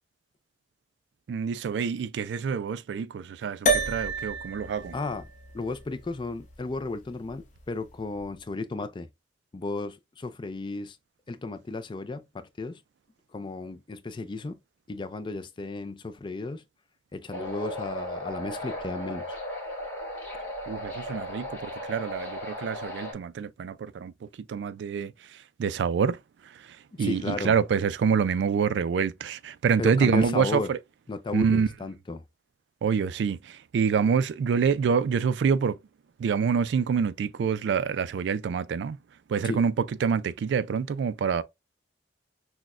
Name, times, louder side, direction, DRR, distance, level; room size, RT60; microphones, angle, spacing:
voice 1, 1.3-5.0 20.7-30.8 31.3-31.7 32.8-35.8 36.2-39.0 39.3-41.4, right 6 dB, 70° right, 0.3 m, -26 dB
sound 1, 3.7-8.2, right 1 dB, 40° left, 0.8 m, -32 dB
voice 2, 4.9-5.2 5.5-9.1 9.5-11.0 11.3-12.8 13.3-14.6 14.9-16.6 17.1-19.4 26.9-27.5 29.8-30.7 31.1-32.2 39.4-39.6, left 3 dB, 25° left, 0.4 m, -34 dB
sound 2, 17.3-23.1, left 1 dB, 10° left, 1.6 m, -36 dB
6.0 x 2.2 x 2.4 m
head